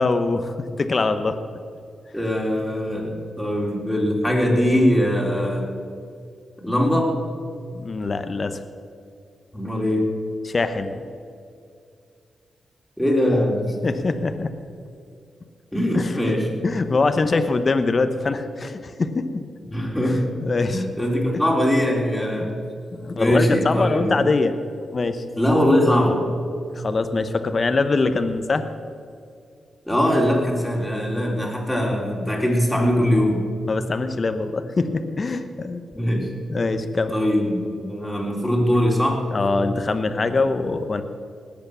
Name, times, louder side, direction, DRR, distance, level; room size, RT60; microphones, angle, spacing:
voice 1, 0.0-1.4 7.7-8.6 10.4-11.0 13.8-14.5 15.9-16.2 16.6-19.4 20.0-20.8 22.4-22.5 22.9-25.2 26.7-28.6 33.7-35.8 36.5-37.1 39.3-41.0, left 3 dB, 40° left, 9 dB, 1.1 m, -23 dB
voice 2, 2.1-5.7 6.6-7.1 9.5-10.1 13.0-13.7 15.7-16.5 19.7-20.3 20.7-22.5 23.2-24.2 25.4-26.3 29.9-33.4 35.9-36.3 37.1-39.3, equal, 5° left, -2 dB, 3.9 m, -21 dB
19.5 x 8.6 x 7.1 m, 2.3 s
cardioid pair, 80°, 0 cm